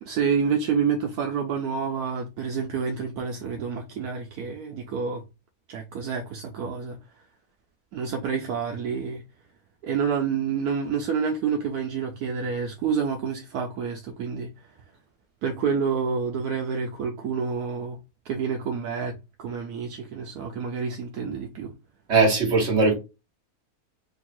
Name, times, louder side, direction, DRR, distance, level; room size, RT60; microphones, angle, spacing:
voice 1, 0.0-5.2 5.7-7.0 7.9-9.2 9.8-14.5 15.4-18.0 18.2-21.7, right 6 dB, 75° right, 1.1 m, -28 dB
voice 2, 22.1-22.9, right 3 dB, 45° right, 1.7 m, -19 dB
3.6 x 2.3 x 4.2 m
omnidirectional pair, 1.7 m